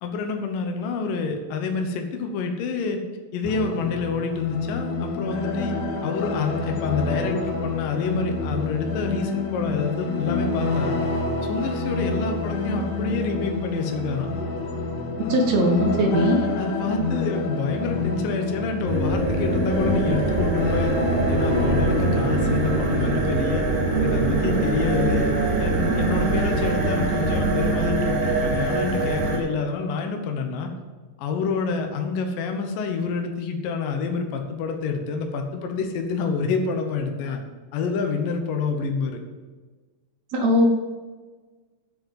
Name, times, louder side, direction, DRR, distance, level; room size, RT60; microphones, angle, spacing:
voice 1, 0.0-3.0 3.3-5.7 6.0-11.0 11.4-14.3 16.6-21.0 21.3-23.7 24.0-25.3 25.6-30.7 31.2-37.4 37.7-39.2, left 4 dB, 70° left, 4 dB, 2.5 m, -27 dB
sound 1, 3.4-23.2, left 3 dB, 90° left, 3.1 m, -28 dB
voice 2, 15.3-16.5 40.3-40.7, equal, 60° right, 2 dB, 1.9 m, -19 dB
sound 2, 18.8-29.4, right 2 dB, 80° right, 4.5 m, -23 dB
7.9 x 7.8 x 7.4 m, 1.4 s
omnidirectional pair, 4.5 m